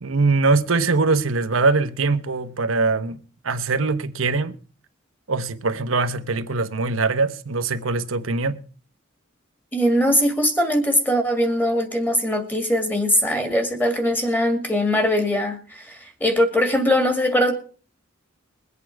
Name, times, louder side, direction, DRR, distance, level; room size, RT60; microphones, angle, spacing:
voice 1, 0.0-3.2 3.4-4.5 5.3-8.6, right 3 dB, 85° right, 1.0 m, -22 dB
voice 2, 9.7-17.5, equal, 10° left, 2.1 m, -21 dB
22.0 x 8.4 x 4.7 m
head